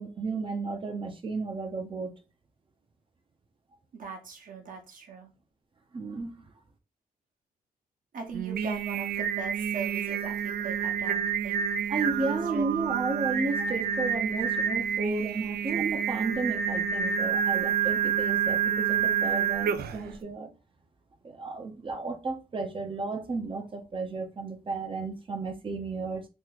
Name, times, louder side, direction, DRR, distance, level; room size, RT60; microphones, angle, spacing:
voice 1, 0.0-2.1 5.9-6.3 11.9-20.5 21.2-26.2, right 3 dB, 35° right, 0.6 m, -33 dB
voice 2, 3.9-5.3 8.1-11.6 12.2-12.9, right 5 dB, 60° right, 1.0 m, -40 dB
Singing, 8.3-20.1, right 8 dB, 85° right, 0.4 m, -28 dB
3.0 x 2.2 x 3.7 m
cardioid pair, 110°, 15 cm